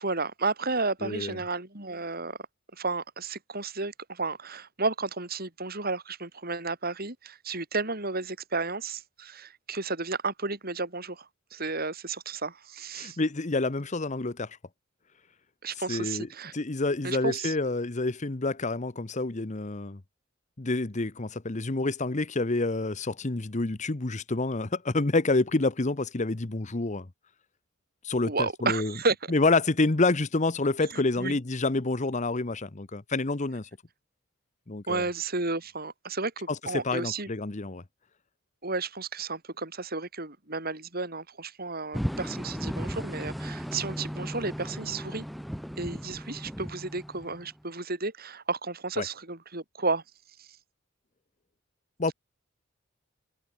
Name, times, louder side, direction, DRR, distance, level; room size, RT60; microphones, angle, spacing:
voice 1, 0.0-2.4 2.8-11.3 11.5-13.2 15.6-16.5 17.0-17.5 28.3-29.1 30.9-31.4 34.9-37.3 38.6-45.2 45.8-50.0 50.4-50.5, right 3 dB, 50° right, 6.7 m, -32 dB
voice 2, 1.0-1.4 12.9-14.6 15.9-20.0 20.6-27.1 28.0-28.9 29.3-33.7 34.7-35.0 36.5-37.8 49.0-49.1 52.0-52.1, left 2 dB, 35° left, 1.0 m, -28 dB
sound 1, 41.9-47.6, equal, ahead, 1.7 m, -36 dB
head